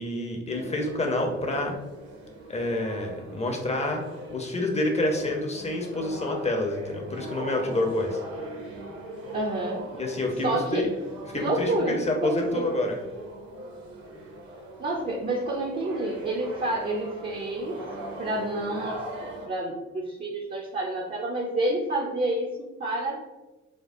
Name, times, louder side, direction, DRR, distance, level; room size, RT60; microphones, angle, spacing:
voice 1, 0.0-1.7 2.5-4.0 4.3-8.2 9.9-10.9 11.3-13.0, left 1 dB, 20° left, 2 dB, 0.7 m, -28 dB
sound 1, 0.5-19.5, right 2 dB, 50° right, 0.8 m, -41 dB
voice 2, 9.3-9.8 10.4-10.8 11.4-12.7 14.8-17.8 18.2-19.0 19.4-23.2, right 2 dB, 25° right, -2 dB, 0.6 m, -29 dB
4.3 x 2.3 x 2.6 m, 1.1 s
figure-of-eight pair, 45°, 36 cm